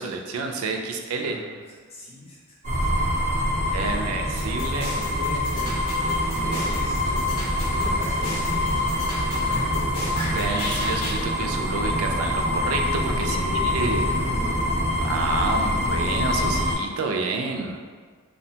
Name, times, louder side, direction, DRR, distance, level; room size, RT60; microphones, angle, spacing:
voice 1, 0.0-1.4 3.7-4.9 10.3-13.4 13.6-14.1 15.0-17.9, right 4 dB, 75° right, 3 dB, 0.3 m, -29 dB
voice 2, 1.2-1.6 1.9-2.5 3.6-10.0 13.2-14.7, left 1 dB, 25° left, -7 dB, 0.5 m, -38 dB
sound 1, 2.6-16.8, left 1 dB, 35° right, 0.6 m, -25 dB
sound 2, 4.4-11.2, left 1 dB, 85° left, 0.9 m, -34 dB
2.7 x 2.1 x 2.7 m, 1.5 s
head